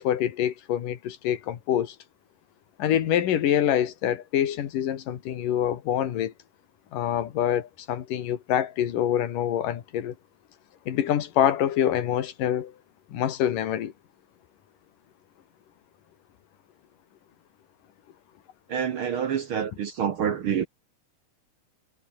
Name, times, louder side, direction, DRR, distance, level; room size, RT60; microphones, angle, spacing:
voice 1, 0.0-2.0 2.8-6.3 6.9-10.2 10.9-12.7 13.1-13.9, left 10 dB, 90° left, 3.4 m, -25 dB
voice 2, 18.7-20.7, right 8 dB, 60° right, 1.5 m, -27 dB
omnidirectional pair, 3.7 m